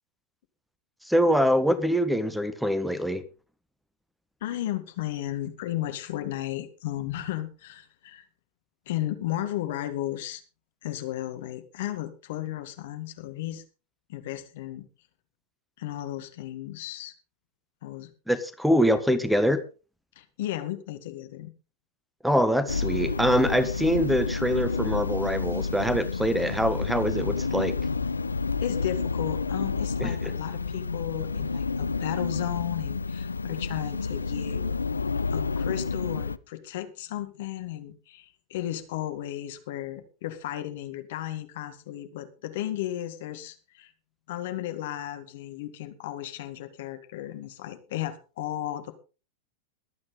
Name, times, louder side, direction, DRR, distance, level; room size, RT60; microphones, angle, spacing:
voice 1, 1.0-3.2 18.3-19.6 22.2-27.7 30.0-30.1, equal, ahead, 14 dB, 1.3 m, -24 dB
voice 2, 4.4-8.3 8.9-10.4 10.8-13.6 14.1-14.9 15.8-17.1 17.8-18.1 20.2-21.5 28.6-34.7 35.3-43.9 44.3-48.9, left 13 dB, 55° left, 8 dB, 2.0 m, -34 dB
sound 1, 22.7-36.4, left 4 dB, 75° left, 0.6 m, -30 dB
22.5 x 8.7 x 3.9 m, 0.34 s
figure-of-eight pair, 90°, 0 cm